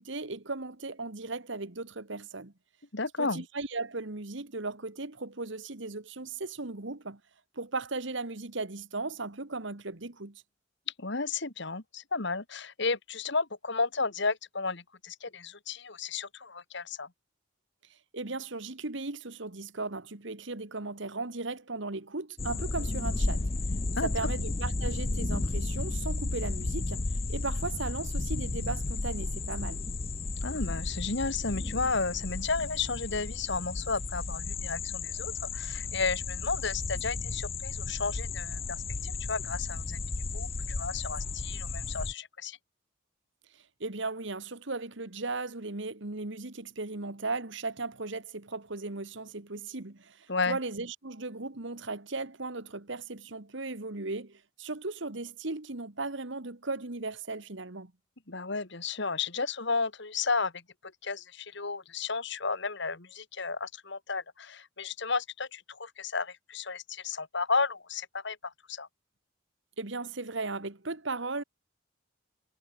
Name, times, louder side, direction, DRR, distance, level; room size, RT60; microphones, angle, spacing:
voice 1, 0.0-2.5 3.2-7.2 7.5-10.4 18.1-23.5 24.0-29.8 43.8-57.9 69.8-71.4, right 3 dB, 65° right, 1.7 m, -37 dB
voice 2, 2.9-3.4 11.0-17.1 23.9-24.1 30.4-40.0 40.3-40.5 40.8-42.6 50.3-50.6 58.3-60.6 61.0-68.9, left 4 dB, 60° left, 2.1 m, -33 dB
sound 1, 22.4-42.1, left 3 dB, 30° left, 0.7 m, -33 dB
head